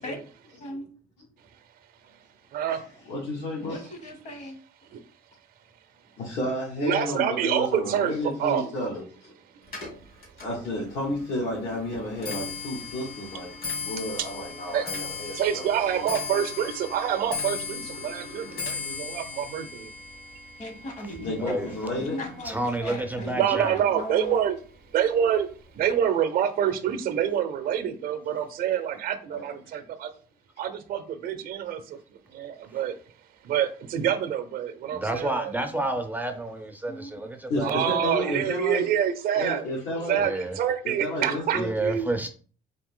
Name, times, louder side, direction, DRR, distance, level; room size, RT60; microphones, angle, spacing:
voice 1, 2.7-3.8 6.2-9.4 10.4-16.1 21.2-22.2 29.4-29.6 37.5-38.9 39.3-40.2 40.8-41.7, left 1 dB, 80° left, -5 dB, 1.6 m, -32 dB
voice 2, 3.6-4.6 20.6-24.4 36.9-37.1, left 1 dB, 45° left, 6 dB, 1.2 m, -38 dB
voice 3, 6.8-8.1 8.4-8.7 9.7-9.8 14.7-14.8 15.3-19.9 23.4-24.6 24.9-25.5 25.7-30.1 30.6-33.0 33.4-35.5 37.6-39.6 40.1-42.1, right 9 dB, 60° right, 9 dB, 0.6 m, -27 dB
Clock, 9.7-23.0 23.3-23.8 24.6-24.7 25.0-25.4 25.7-25.8, left 4 dB, 60° left, 2.1 m, -37 dB
voice 4, 21.4-21.7 22.4-23.8 34.9-38.3 40.1-40.6 41.5-42.3, right 2 dB, 10° right, 5 dB, 0.5 m, -30 dB
3.9 x 2.8 x 3.7 m, 0.40 s
cardioid pair, 110°, 17 cm